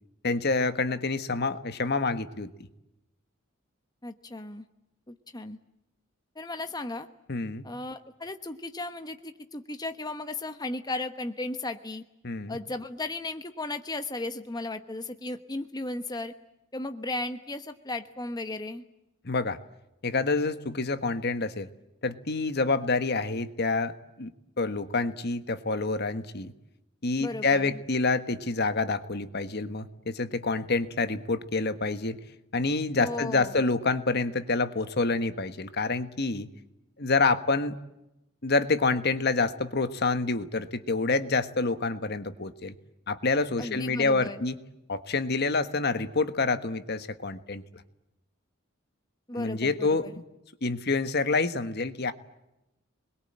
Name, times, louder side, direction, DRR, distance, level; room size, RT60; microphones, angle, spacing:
voice 1, 0.2-2.7 7.3-7.7 12.2-12.6 19.2-19.6 20.0-21.7 22.0-24.3 24.6-26.5 27.0-32.2 32.5-36.5 37.0-37.8 38.4-42.7 43.1-44.6 44.9-47.6 49.3-50.2 50.6-52.1, left 3 dB, 50° left, 10 dB, 1.4 m, -27 dB
voice 2, 4.0-4.6 5.1-5.6 6.3-7.1 7.6-12.0 12.5-16.3 16.7-18.8 27.2-27.8 33.0-33.5 43.6-44.4 49.3-50.2, left 2 dB, 20° left, 8 dB, 1.1 m, -35 dB
27.0 x 21.5 x 8.8 m, 0.90 s
head